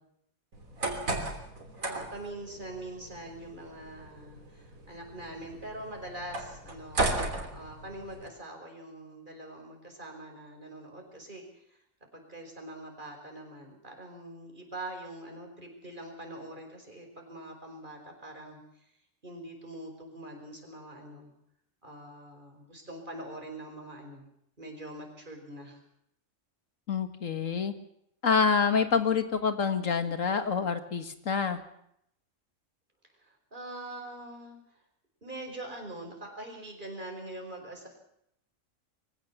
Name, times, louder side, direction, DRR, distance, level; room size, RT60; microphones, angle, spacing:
sound 1, 0.5-8.3, right 2 dB, 85° right, 3.7 m, -36 dB
voice 1, 1.8-7.1 7.5-11.8 12.1-18.9 19.2-21.3 21.8-24.3 24.6-25.8 33.1-34.8 35.2-37.9, right 1 dB, 35° right, 2 dB, 5.3 m, -43 dB
voice 2, 26.9-27.7 28.2-31.6, left 5 dB, 70° left, 9 dB, 2.1 m, -27 dB
23.0 x 16.0 x 7.4 m, 0.74 s
omnidirectional pair, 1.4 m